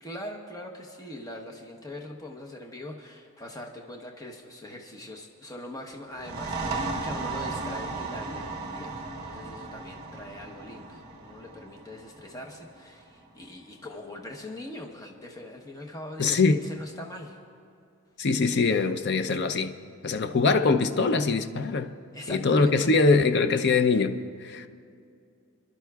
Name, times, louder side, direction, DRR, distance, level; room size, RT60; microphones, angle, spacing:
voice 1, 0.0-17.4 22.1-22.9, left 1 dB, 15° left, 0.9 m, -42 dB
sound 1, 6.1-13.5, right 3 dB, 30° right, 2.3 m, -36 dB
voice 2, 16.2-16.6 18.2-19.7 20.0-21.9 22.3-24.1 24.4-24.7, left 4 dB, 50° left, 0.5 m, -23 dB
29.0 x 12.0 x 2.3 m
head